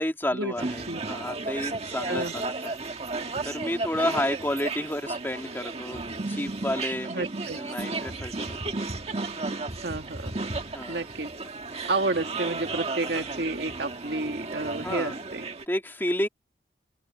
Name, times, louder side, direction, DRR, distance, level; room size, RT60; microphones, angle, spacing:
voice 1, 0.0-2.8 3.4-6.0 6.3-8.6 10.7-11.0 11.7-11.8 13.1-13.3 14.8-15.1 15.7-16.3, left 1 dB, 10° left, 2.5 m, -31 dB
sound 1, 0.6-15.6, right 3 dB, 35° right, 1.7 m, -34 dB
voice 2, 7.1-7.6 9.8-10.4 10.9-11.3 11.9-15.5, right 2 dB, 65° right, 1.8 m, -30 dB
open air
head